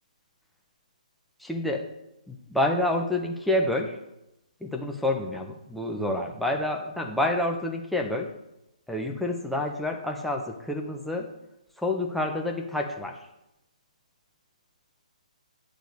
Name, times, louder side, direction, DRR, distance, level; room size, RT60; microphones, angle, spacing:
voice 1, 1.4-1.9 2.3-4.0 4.6-8.3 8.9-11.3 11.8-13.2, left 1 dB, ahead, 0 dB, 0.9 m, -28 dB
9.0 x 3.9 x 6.7 m, 0.88 s
figure-of-eight pair, 135°, 4 cm